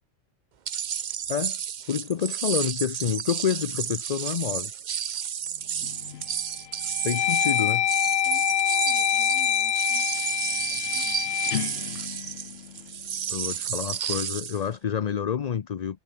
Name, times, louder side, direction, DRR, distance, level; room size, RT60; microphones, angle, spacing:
sound 1, 0.7-14.6, right 8 dB, 50° right, 0.7 m, -31 dB
voice 1, 1.9-4.7 7.0-7.8 13.3-16.0, left 8 dB, 45° left, 0.7 m, -28 dB
sound 2, 5.8-6.2 6.7-12.9, left 11 dB, 70° left, 0.9 m, -26 dB
voice 2, 7.2-7.7 8.2-11.4 11.7-12.0, equal, 5° right, 6.8 m, -52 dB
omnidirectional pair, 1.1 m